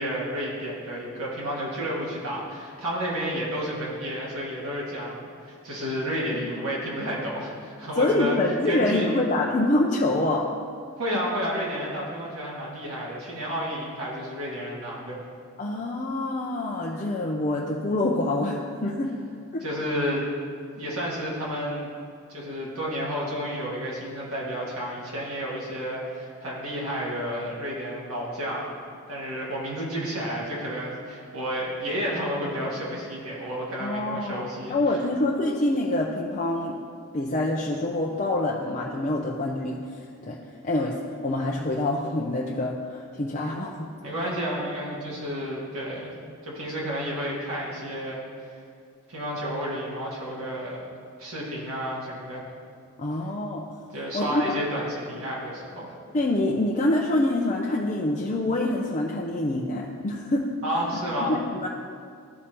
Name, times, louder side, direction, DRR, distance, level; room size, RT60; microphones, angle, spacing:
voice 1, 0.0-8.4 8.7-9.1 11.0-15.2 19.6-20.3 20.7-21.9 22.3-28.7 29.1-34.8 44.0-46.1 46.4-48.6 49.1-50.8 51.2-52.4 53.9-55.9 60.6-61.4, equal, 75° right, -5 dB, 1.9 m, -31 dB
voice 2, 8.0-10.5 15.6-19.1 19.5-19.6 33.8-36.8 37.1-39.8 40.2-40.4 40.6-43.9 53.0-53.6 54.1-54.6 56.1-60.5 61.3-61.7, left 2 dB, 35° left, -3 dB, 0.5 m, -26 dB
13.0 x 4.9 x 2.9 m, 2.3 s
head